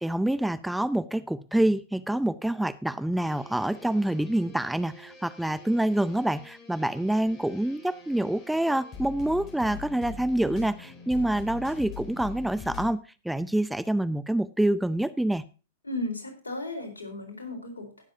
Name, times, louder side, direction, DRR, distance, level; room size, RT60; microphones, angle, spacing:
voice 1, 0.0-13.0 13.2-15.4, right 1 dB, 5° right, 14 dB, 0.6 m, -26 dB
sound 1, 3.2-13.0, left 5 dB, 30° left, 4.2 m, -44 dB
voice 2, 15.8-18.0, left 2 dB, 85° left, 4 dB, 4.1 m, -35 dB
19.0 x 7.3 x 2.8 m, 0.33 s
figure-of-eight pair, 100°, 0 cm